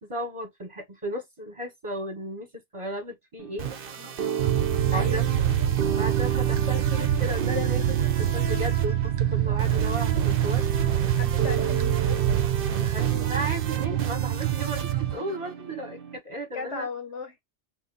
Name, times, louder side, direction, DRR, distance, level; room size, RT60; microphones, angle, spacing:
voice 1, 0.0-3.7 4.9-5.3 6.0-10.6 12.7-16.9, equal, 25° right, 1.1 m, -35 dB
sound 1, 3.4-16.2, right 7 dB, 55° right, 0.8 m, -33 dB
sound 2, 4.4-15.2, right 11 dB, 85° right, 0.9 m, -25 dB
voice 2, 4.9-5.2 11.1-12.2 16.5-17.4, left 5 dB, 70° left, 1.2 m, -36 dB
2.9 x 2.7 x 3.8 m
omnidirectional pair, 1.2 m